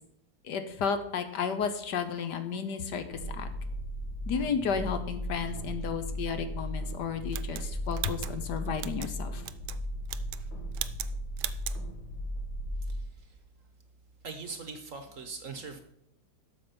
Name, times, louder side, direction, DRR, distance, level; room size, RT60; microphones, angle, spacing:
voice 1, 0.4-3.0 3.3-3.5 4.3-9.4, left 6 dB, 70° left, 9 dB, 1.4 m, -32 dB
sound 1, 3.1-13.0, equal, 85° left, 2.8 m, -36 dB
sound 2, 7.3-9.1 9.4-9.8 10.1-10.5 10.7-11.1 11.4-11.8, right 13 dB, 75° right, 1.1 m, -38 dB
voice 2, 14.2-15.8, right 4 dB, 50° right, 7 dB, 1.2 m, -41 dB
12.0 x 7.0 x 5.2 m, 0.75 s
omnidirectional pair, 2.0 m